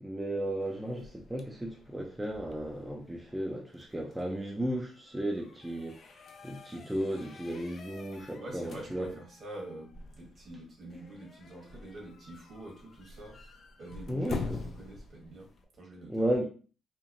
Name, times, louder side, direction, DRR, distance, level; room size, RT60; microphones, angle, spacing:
voice 1, 0.0-6.0 6.4-9.1 14.1-14.6 16.1-16.5, right 1 dB, 10° right, 0.5 m, -34 dB
sound 1, 0.6-15.6, left 3 dB, 50° left, 0.3 m, -46 dB
voice 2, 8.4-13.4 13.8-16.3, right 1 dB, 50° right, 1.3 m, -46 dB
2.8 x 2.0 x 2.5 m
cardioid pair, 90°, 0 cm